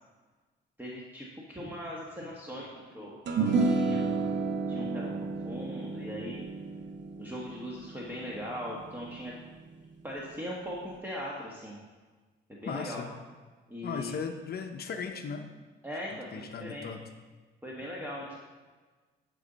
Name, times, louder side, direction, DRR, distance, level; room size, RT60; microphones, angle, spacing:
voice 1, 0.8-4.3 4.7-6.4 7.2-9.3 10.0-11.8 12.5-13.0 13.7-14.1 15.8-16.9 17.6-18.4, equal, 10° right, -4 dB, 1.3 m, -40 dB
sound 1, 3.3-9.8, right 3 dB, 65° right, 1.0 m, -31 dB
voice 2, 4.6-5.0 12.6-13.1 13.8-15.5 16.3-17.0, left 5 dB, 50° left, 5 dB, 0.7 m, -37 dB
11.0 x 5.3 x 4.0 m, 1.3 s
cardioid pair, 90°, 20 cm